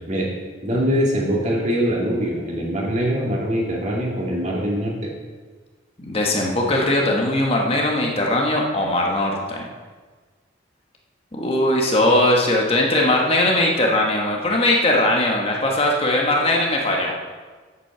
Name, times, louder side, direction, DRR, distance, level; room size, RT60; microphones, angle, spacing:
voice 1, 0.6-4.9, equal, 40° right, -3 dB, 2.6 m, -23 dB
voice 2, 6.0-9.6 11.3-17.1, left 1 dB, 30° left, -1 dB, 1.5 m, -20 dB
8.8 x 8.5 x 6.8 m, 1.4 s
head